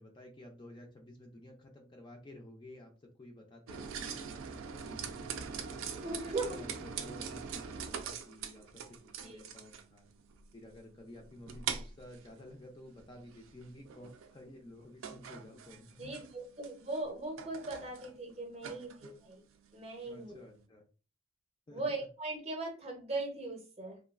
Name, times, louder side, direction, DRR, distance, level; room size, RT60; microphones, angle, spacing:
voice 1, 0.0-6.1 6.4-10.1 10.5-16.3 20.1-20.8 21.7-22.1, left 1 dB, 20° left, 2 dB, 0.3 m, -53 dB
sound 1, 3.7-20.6, right 6 dB, 75° right, 0.4 m, -43 dB
voice 2, 6.0-6.6 9.2-9.4 16.0-19.4 19.7-20.4 21.7-24.0, right 2 dB, 30° right, 2 dB, 0.6 m, -39 dB
3.0 x 2.3 x 2.3 m, 0.36 s
head